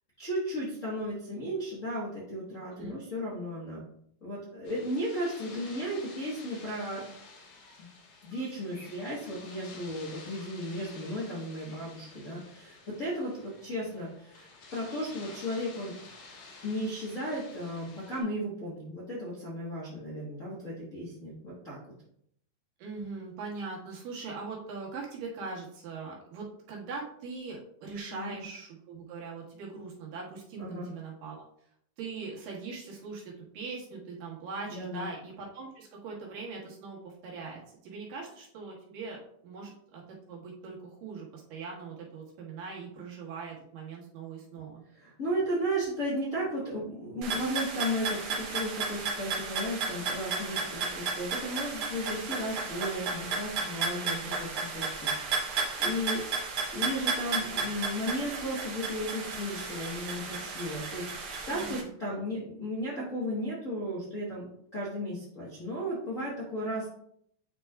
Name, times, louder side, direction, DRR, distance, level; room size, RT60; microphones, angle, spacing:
voice 1, 0.2-3.9 4.2-7.0 7.8-7.9 8.2-15.9 16.6-21.8 28.1-28.4 30.6-30.9 34.7-35.1 44.9-54.8 55.1-56.2 56.7-66.9, equal, 55° left, -7 dB, 0.8 m, -35 dB
sound 1, 4.6-18.2, left 3 dB, 85° left, 3.1 m, -51 dB
voice 2, 22.8-31.4 32.0-44.8 50.4-50.7 53.9-54.4 61.5-61.9, right 4 dB, 85° right, -3 dB, 3.2 m, -41 dB
sound 2, 47.2-61.8, right 4 dB, 65° right, 1.4 m, -33 dB
9.6 x 4.5 x 2.4 m, 0.70 s
omnidirectional pair, 3.8 m